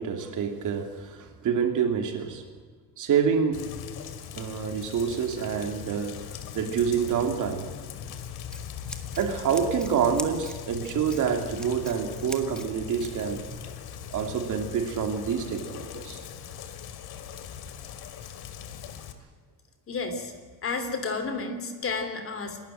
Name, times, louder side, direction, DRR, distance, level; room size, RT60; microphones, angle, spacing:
voice 1, 0.0-2.4 3.0-3.6 4.3-6.2 6.5-7.6 9.2-13.4 14.1-16.2, right 7 dB, 55° right, 5 dB, 2.9 m, -27 dB
Rain, 3.5-19.1, left 8 dB, 85° left, 2.4 m, -40 dB
Scissors, 8.0-13.4, left 2 dB, ahead, 1.7 m, -42 dB
voice 2, 19.9-20.3 20.6-22.6, left 4 dB, 35° left, 8 dB, 3.0 m, -31 dB
28.5 x 13.0 x 9.0 m, 1.6 s
cardioid pair, 155°, 37 cm